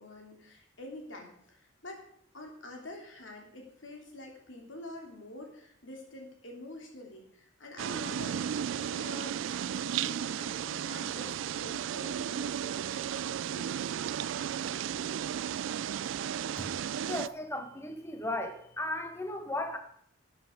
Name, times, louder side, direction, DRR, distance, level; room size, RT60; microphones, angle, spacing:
voice 1, 0.0-2.0 2.3-13.7, left 1 dB, 75° left, 2 dB, 2.9 m, -47 dB
sound 1, 7.8-17.3, right 9 dB, 70° right, 0.3 m, -34 dB
voice 2, 17.0-19.8, left 1 dB, 15° left, 5 dB, 1.3 m, -36 dB
12.5 x 8.0 x 5.1 m, 0.66 s
head